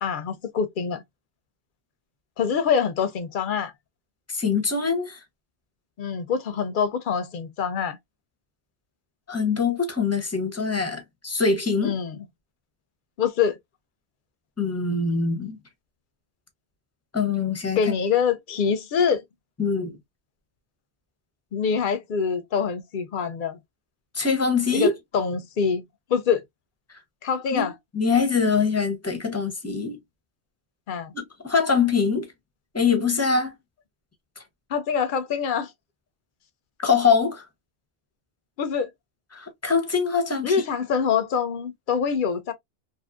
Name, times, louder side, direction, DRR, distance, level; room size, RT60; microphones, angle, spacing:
voice 1, 0.0-1.0 2.4-3.7 6.0-8.0 11.8-12.3 13.2-13.6 17.8-19.2 21.5-23.6 24.7-26.4 27.2-27.7 30.9-31.1 34.7-35.7 38.6-38.9 40.4-42.5, left 6 dB, 60° left, 0.6 m, -25 dB
voice 2, 4.3-5.2 9.3-12.0 14.6-15.6 17.1-17.8 19.6-20.0 24.1-24.9 27.5-27.7 27.9-30.0 31.1-32.3 32.7-33.5 36.8-37.4 39.3-40.6, left 5 dB, 15° left, 0.6 m, -23 dB
2.7 x 2.5 x 2.4 m
omnidirectional pair, 1.1 m